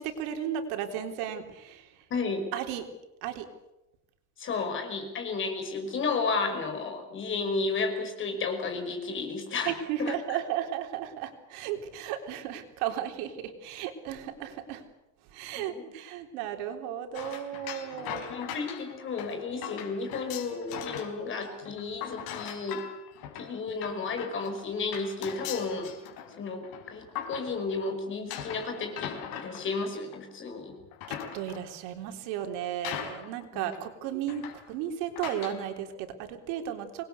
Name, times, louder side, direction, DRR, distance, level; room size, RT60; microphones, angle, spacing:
voice 1, 0.0-2.0 2.5-2.9 3.2-3.5 9.7-14.8 15.3-18.3 31.3-37.0, right 10 dB, 85° right, 5 dB, 3.7 m, -34 dB
voice 2, 2.1-2.5 4.4-9.7 10.0-10.1 15.6-15.8 18.3-22.8 23.4-25.9 26.4-30.7 33.5-33.6, left 4 dB, 35° left, 5 dB, 5.5 m, -32 dB
sound 1, 17.1-21.2 21.4-27.8 28.3-30.3 30.8-31.7 32.4-32.5 32.8-33.4 33.7-33.8 34.3-34.7 35.2-35.6, left 9 dB, 70° left, 4.8 m, -40 dB
26.0 x 20.5 x 8.3 m, 0.96 s
cardioid pair, 165°, 36 cm